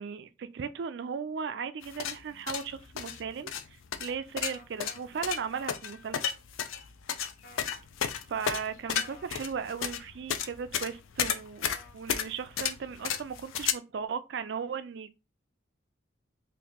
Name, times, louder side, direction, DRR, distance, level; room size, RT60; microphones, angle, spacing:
voice 1, 0.0-3.5 4.0-6.2 8.3-15.2, right 6 dB, 55° right, 0.3 m, -36 dB
sound 1, 1.8-13.7, left 8 dB, 80° left, 0.4 m, -33 dB
sound 2, 4.5-5.7 7.4-7.7 9.0-9.3 11.6-12.0, left 1 dB, 50° left, 0.7 m, -51 dB
2.9 x 2.6 x 3.5 m
head